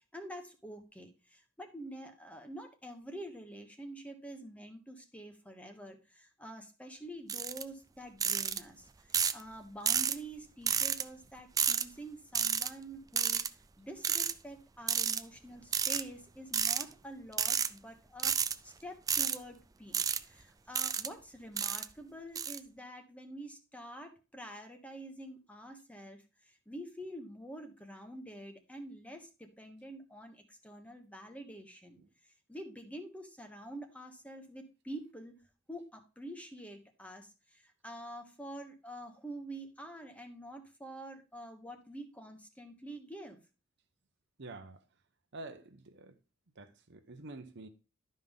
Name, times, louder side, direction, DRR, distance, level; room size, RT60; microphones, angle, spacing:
voice 1, 0.1-13.4 13.8-18.4 18.6-32.0 32.5-35.4 35.7-43.4, right 1 dB, 5° left, 1.2 m, -47 dB
sound 1, 7.3-7.6 8.2-8.6 9.1-9.4 9.9-10.2 10.7-11.0 11.6-11.8 12.3-12.7 13.2-13.5 14.0-14.3 14.9-15.2 15.7-16.0 16.5-16.8 17.3-17.7 18.2-18.5 19.1-19.4 19.9-20.2 20.7-21.1 21.6-21.9 22.4-22.6, right 7 dB, 15° right, 0.3 m, -30 dB
voice 2, 44.4-44.8 45.3-46.1 46.6-47.7, right 2 dB, 55° right, 0.9 m, -47 dB
12.0 x 5.4 x 3.7 m
head